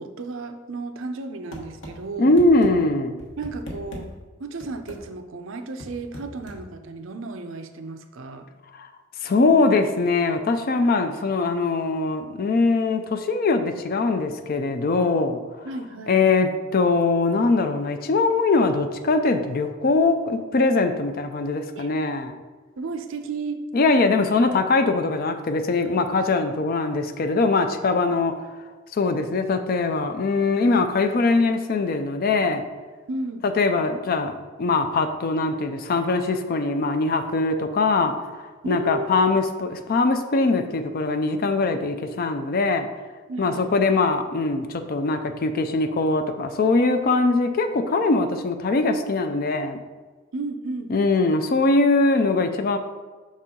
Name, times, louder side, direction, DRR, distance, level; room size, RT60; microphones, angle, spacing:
voice 1, 0.0-2.3 3.4-4.1 4.4-8.5 15.6-16.2 21.8-22.2 22.8-23.6 33.1-33.4 38.6-39.1 43.3-43.8 50.3-50.9, right 3 dB, 60° right, 7 dB, 0.5 m, -33 dB
sound 1, 1.5-2.0 2.4-2.7 3.2-4.1 4.6-5.0 5.8-6.6, equal, 60° left, 1.1 m, -38 dB
voice 2, 2.2-3.1 8.7-8.9 9.2-15.4 16.1-22.3 23.7-28.3 28.9-32.6 33.4-42.9 43.4-49.8 50.9-52.8, left 3 dB, 45° left, 7 dB, 0.4 m, -22 dB
6.0 x 4.2 x 3.7 m, 1.4 s
head